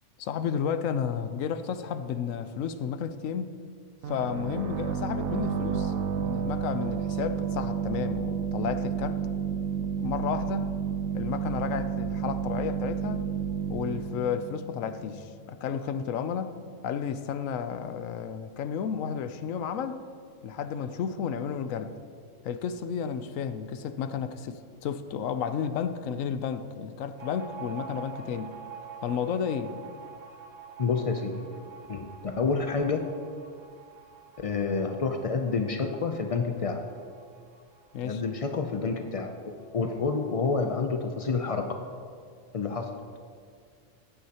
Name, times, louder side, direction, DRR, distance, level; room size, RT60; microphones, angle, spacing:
voice 1, 0.2-3.5 4.1-9.2 10.0-10.8 11.1-13.3 13.7-16.6 16.8-20.1 20.4-22.0 22.4-28.5 29.0-29.7 37.9-38.2, left 7 dB, 80° left, 10 dB, 1.0 m, -32 dB
sound 1, 4.0-15.5, right 7 dB, 90° right, 1.2 m, -31 dB
sound 2, 27.2-40.3 40.6-40.7 41.0-41.7, right 7 dB, 70° right, 1.5 m, -47 dB
voice 2, 30.8-31.5 31.9-33.1 34.4-36.9 38.0-41.8 42.5-42.9, left 4 dB, 60° left, 5 dB, 0.3 m, -29 dB
16.0 x 9.5 x 2.9 m, 2.2 s
omnidirectional pair, 1.4 m